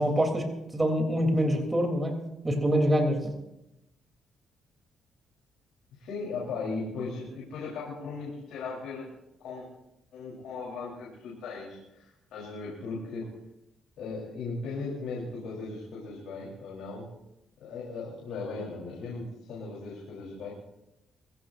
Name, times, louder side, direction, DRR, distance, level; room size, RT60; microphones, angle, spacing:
voice 1, 0.0-2.2 2.4-3.3, equal, 20° right, 2 dB, 3.4 m, -25 dB
voice 2, 6.0-9.1 9.4-9.7 10.1-13.3 14.0-17.1 17.6-20.5, left 4 dB, 80° left, -4 dB, 4.0 m, -37 dB
23.0 x 16.0 x 2.7 m, 0.89 s
cardioid pair, 90°, 0 cm